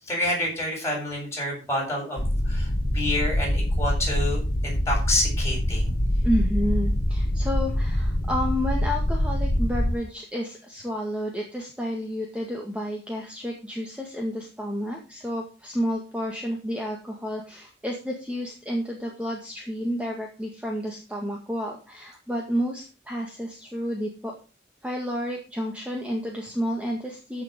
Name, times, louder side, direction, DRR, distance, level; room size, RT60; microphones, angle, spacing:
voice 1, 0.1-5.9, left 1 dB, 15° left, 0 dB, 7.7 m, -28 dB
sound 1, 2.2-9.9, equal, 85° left, 1.6 m, -24 dB
voice 2, 6.2-24.3 24.8-27.4, equal, 5° right, -1 dB, 2.0 m, -30 dB
13.5 x 6.4 x 5.3 m, 0.34 s
head